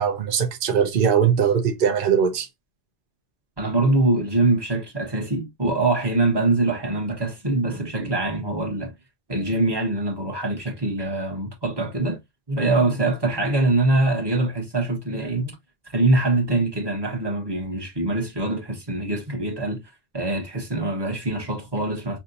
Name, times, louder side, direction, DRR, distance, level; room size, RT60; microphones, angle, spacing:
voice 1, 0.0-2.5, right 7 dB, 55° right, 0.8 m, -20 dB
voice 2, 3.6-8.9 9.3-12.2 12.5-15.6 15.9-19.8 20.1-22.2, right 2 dB, 20° right, 1.3 m, -23 dB
5.7 x 2.5 x 2.6 m
omnidirectional pair, 1.2 m